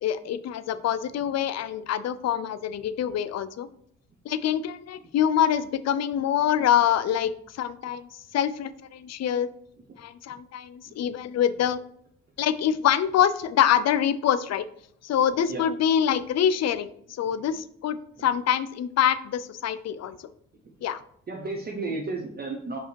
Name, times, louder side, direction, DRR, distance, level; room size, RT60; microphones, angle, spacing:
voice 1, 0.0-3.7 4.2-9.5 10.0-11.8 12.4-14.7 15.0-20.2 20.8-21.0, left 9 dB, 60° left, 13 dB, 0.6 m, -25 dB
voice 2, 21.3-22.8, right 3 dB, 30° right, 1 dB, 1.0 m, -34 dB
5.3 x 5.0 x 4.6 m, 0.69 s
cardioid pair, 90°, 30 cm